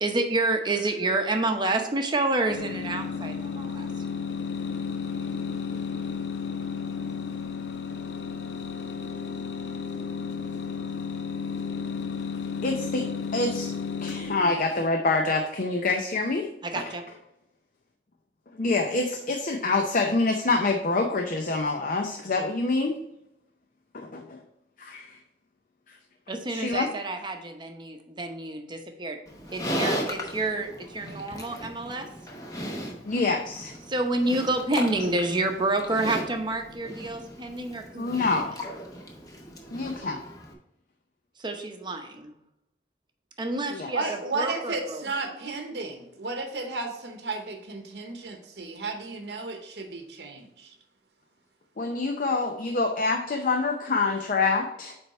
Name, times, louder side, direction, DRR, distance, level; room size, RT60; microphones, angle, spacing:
voice 1, 0.0-3.9 16.6-17.0 26.3-29.2 29.5-32.1 33.9-38.5 41.4-42.3 43.4-45.1, right 2 dB, 25° right, 4 dB, 0.8 m, -29 dB
sound 1, 2.5-14.8, left 5 dB, 90° left, 0.6 m, -33 dB
voice 2, 12.6-13.0 13.3-13.7 14.0-16.5 18.5-23.0 23.9-24.4 24.8-25.2 25.9-26.0 26.5-26.9 33.0-33.7 38.0-38.5 39.7-40.2 43.7-43.9 51.8-54.9, left 3 dB, 50° left, 3 dB, 0.6 m, -26 dB
Livestock farm animals working animals, 29.3-40.5, equal, 20° left, 0.9 m, -36 dB
voice 3, 43.9-50.7, right 3 dB, 70° right, 3 dB, 0.9 m, -33 dB
8.5 x 3.4 x 4.2 m, 0.82 s
head